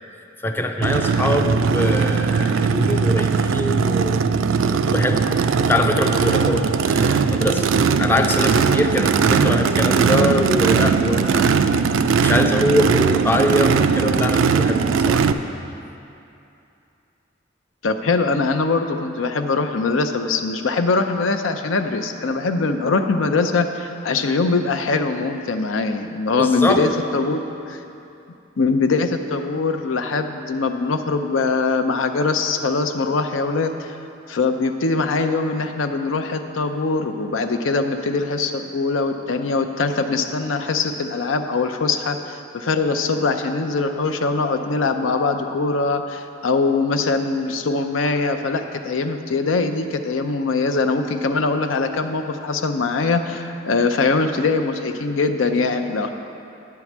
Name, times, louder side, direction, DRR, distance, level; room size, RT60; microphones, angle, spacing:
voice 1, 0.4-4.2 4.7-5.2 5.6-7.6 8.0-11.8 12.2-14.8 15.1-15.2 26.4-26.8, left 1 dB, 10° left, 4 dB, 0.4 m, -23 dB
Race car auto racing / Idling / Accelerating revving vroom, 0.8-15.3, right 5 dB, 80° right, 0.4 m, -19 dB
voice 2, 17.8-27.4 27.7-27.8 28.6-34.0 34.3-42.2 42.5-56.1, left 3 dB, 85° left, 7 dB, 0.5 m, -22 dB
9.8 x 4.7 x 7.2 m, 2.7 s
head